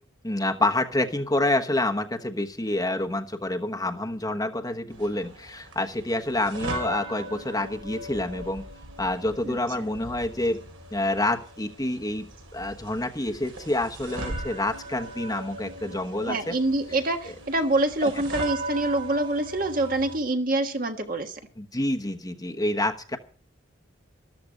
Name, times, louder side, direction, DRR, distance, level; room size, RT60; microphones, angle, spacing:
voice 1, 0.2-8.6 9.0-16.6 18.0-18.1 21.6-23.2, left 1 dB, 20° left, 5 dB, 1.1 m, -28 dB
sound 1, 4.9-20.2, right 1 dB, 85° right, 4.6 m, -39 dB
voice 2, 9.4-9.9 16.3-21.4, right 2 dB, 45° right, 5 dB, 1.5 m, -26 dB
13.5 x 13.5 x 5.1 m, 0.43 s
head